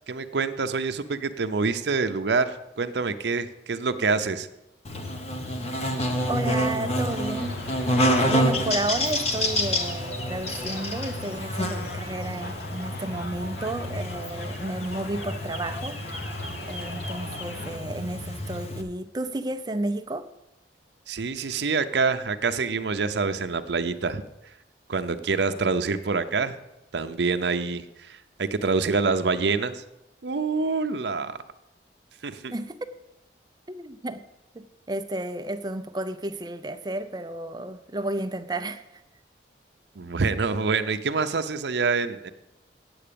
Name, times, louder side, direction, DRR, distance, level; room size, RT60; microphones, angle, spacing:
voice 1, 0.1-4.5 21.1-24.2 24.9-26.6 26.9-29.8 30.2-31.4 32.2-32.5 40.0-42.3, right 4 dB, 75° right, 0.6 m, -26 dB
Buzz, 4.8-18.8, equal, 35° left, 1.1 m, -28 dB
voice 2, 6.0-7.7 8.2-16.0 16.7-20.3 32.5-32.8 33.7-34.2 34.5-39.0, right 2 dB, 25° right, 0.5 m, -32 dB
sound 1, 7.1-17.8, left 1 dB, 60° left, 1.1 m, -40 dB
8.7 x 7.8 x 6.8 m
head